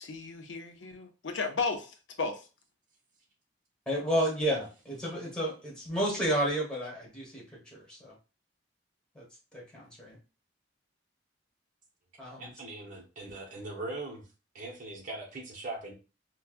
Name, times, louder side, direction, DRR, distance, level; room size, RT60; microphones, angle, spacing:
voice 1, 0.0-2.4, left 4 dB, 75° left, 0.7 m, -34 dB
voice 2, 3.9-8.1 9.1-9.2 9.5-10.2 12.2-12.5, equal, 5° left, 1.5 m, -31 dB
voice 3, 12.3-14.3 14.5-15.9, right 2 dB, 45° right, 1.1 m, -40 dB
4.5 x 2.3 x 2.4 m
head